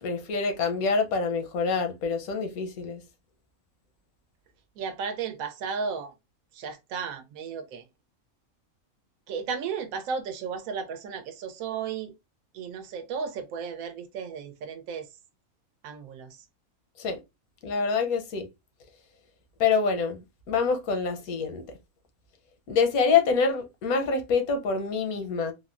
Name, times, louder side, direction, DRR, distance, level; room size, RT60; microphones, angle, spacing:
voice 1, 0.0-3.0 17.0-17.2 17.6-18.5 19.6-20.2 20.5-21.6 22.7-25.5, left 5 dB, 90° left, 1.1 m, -26 dB
voice 2, 4.8-6.1 6.5-7.8 9.3-12.1 12.5-15.1 15.8-16.4, right 6 dB, 80° right, 1.0 m, -34 dB
3.4 x 2.0 x 2.4 m
omnidirectional pair, 1.5 m